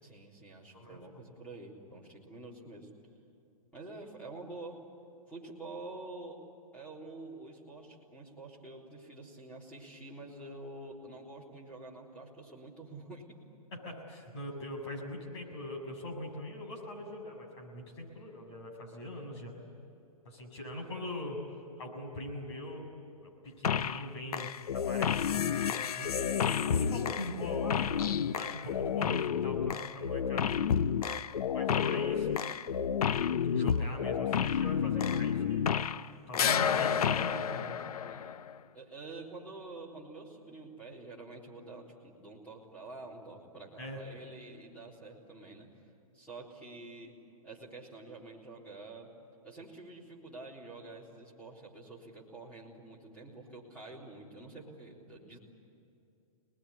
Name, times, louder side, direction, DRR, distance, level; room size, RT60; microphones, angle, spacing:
voice 1, 0.0-2.9 3.7-4.8 5.3-6.4 6.7-13.4 38.1-38.4 38.7-45.7 46.1-47.2 47.4-49.1 49.4-55.4, right 2 dB, 5° left, -4 dB, 3.8 m, -47 dB
voice 2, 0.7-1.2 13.7-19.6 20.3-22.9 23.2-26.1 26.4-27.9 28.3-30.7 31.5-32.4 33.5-37.8 43.8-44.0, left 1 dB, 45° left, 0 dB, 7.0 m, -42 dB
sound 1, 23.6-24.1 24.3-36.1 36.3-38.5, left 8 dB, 80° left, 0.8 m, -30 dB
27.5 x 20.5 x 9.9 m, 2.7 s
hypercardioid pair, 170°, 19 cm